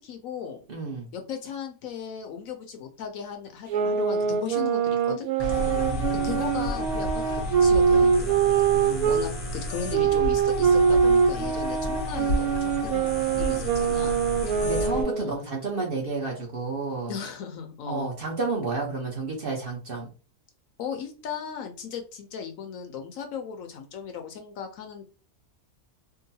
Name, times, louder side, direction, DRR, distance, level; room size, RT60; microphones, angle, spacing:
voice 1, 0.0-0.6 1.1-5.3 6.2-7.1 7.3-8.6 9.1-13.1 13.4-14.2 15.2-15.4 17.1-18.1 20.8-25.0, left 7 dB, 70° left, 5 dB, 1.0 m, -36 dB
voice 2, 0.7-1.1 5.5-6.4 8.7-9.2 14.6-17.1 17.9-20.1, right 3 dB, 45° right, -1 dB, 0.9 m, -31 dB
sound 1, 3.7-9.3 9.9-15.4, right 6 dB, 85° right, 1.1 m, -23 dB
sound 2, 5.4-15.0, left 1 dB, 85° left, 1.4 m, -32 dB
3.7 x 2.1 x 2.7 m, 0.34 s
omnidirectional pair, 1.5 m